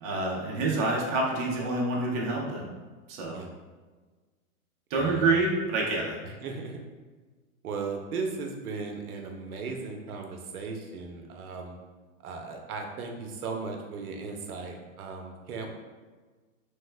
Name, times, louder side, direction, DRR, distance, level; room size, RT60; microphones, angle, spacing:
voice 1, 0.0-2.7 3.1-3.4 4.9-6.1, right 3 dB, 25° right, -2 dB, 0.5 m, -27 dB
voice 2, 4.9-5.4 6.2-6.8 7.6-11.8 12.2-15.7, right 4 dB, 90° right, 3 dB, 0.7 m, -37 dB
3.1 x 2.1 x 3.2 m, 1.4 s
hypercardioid pair, 135°, 43 cm